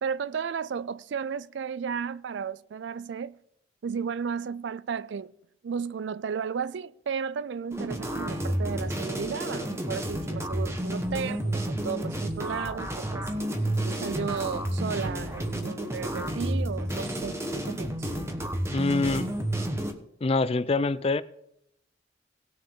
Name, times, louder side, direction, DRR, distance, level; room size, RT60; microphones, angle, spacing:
voice 1, 0.0-3.4 3.8-5.3 5.6-13.3 13.9-18.1, right 6 dB, 70° right, 0.4 m, -34 dB
sound 1, 7.7-19.9, right 1 dB, 15° right, 1.1 m, -31 dB
sound 2, 13.7-16.0 16.3-18.5, left 2 dB, 70° left, 1.0 m, -51 dB
voice 2, 18.7-19.3 20.2-21.2, left 3 dB, 30° left, 0.4 m, -25 dB
18.5 x 6.5 x 3.8 m
head